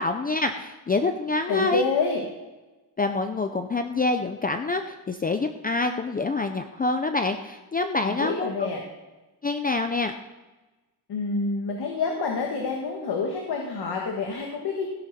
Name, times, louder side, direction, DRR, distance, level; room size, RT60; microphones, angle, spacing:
voice 1, 0.0-1.9 3.0-8.7 9.4-10.1, left 3 dB, 20° left, 7 dB, 0.5 m, -26 dB
voice 2, 1.5-2.2 8.0-8.8 11.1-14.9, left 4 dB, 65° left, 1 dB, 1.8 m, -27 dB
16.0 x 11.0 x 4.2 m, 1.2 s
wide cardioid pair, 170°, 41 cm